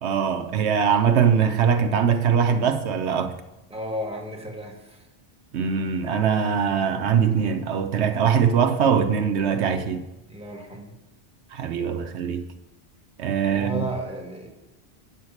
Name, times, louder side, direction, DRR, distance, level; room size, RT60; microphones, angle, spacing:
voice 1, 0.0-3.3 5.5-10.0 11.5-12.4 13.2-13.9, right 7 dB, 80° right, 1.0 m, -22 dB
voice 2, 3.7-5.0 10.3-10.9 13.5-14.5, right 1 dB, 5° right, 1.3 m, -33 dB
8.0 x 5.6 x 7.1 m
omnidirectional pair, 1.1 m